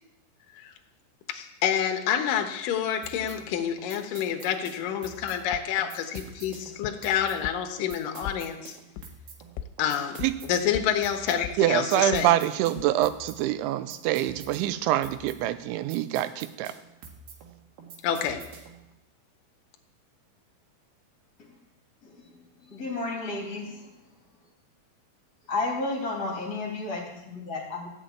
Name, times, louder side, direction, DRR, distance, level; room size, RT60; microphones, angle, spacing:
voice 1, 1.3-8.7 9.8-12.3 18.0-18.4, left 9 dB, 70° left, 5 dB, 2.1 m, -28 dB
sound 1, 3.0-18.9, right 5 dB, 65° right, 3.3 m, -47 dB
sound 2, 5.5-5.6 6.2-6.3 6.8-6.9 7.4-7.5 7.9-8.4 9.0-9.1 9.6-9.7 10.2-10.3 10.7-10.8 11.4-11.5 12.1-12.2 12.8-12.9, left 11 dB, 90° left, 3.1 m, -36 dB
voice 2, 11.6-16.7, right 13 dB, 85° right, 12 dB, 3.1 m, -25 dB
voice 3, 22.0-22.3 22.7-23.9 25.5-27.9, left 3 dB, 25° left, -1 dB, 2.2 m, -32 dB
14.0 x 6.7 x 8.8 m, 0.91 s
omnidirectional pair, 5.4 m